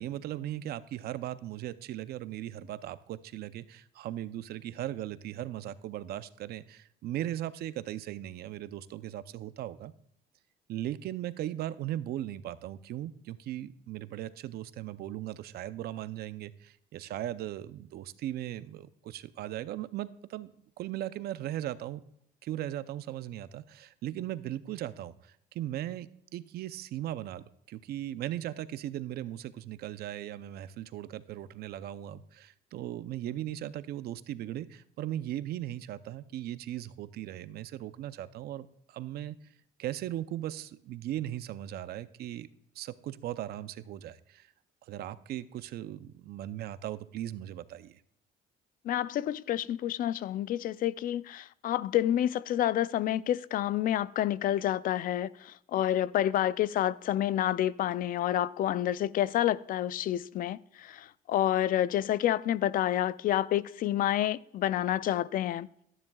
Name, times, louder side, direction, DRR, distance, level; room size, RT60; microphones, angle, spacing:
voice 1, 0.0-9.9 10.7-20.5 20.8-22.0 22.4-39.4 39.8-42.5 42.8-44.5 44.9-48.0, right 13 dB, 65° right, 0.6 m, -38 dB
voice 2, 48.9-65.7, left 12 dB, 55° left, 0.4 m, -29 dB
12.5 x 11.0 x 2.3 m
cardioid pair, 110°, 17 cm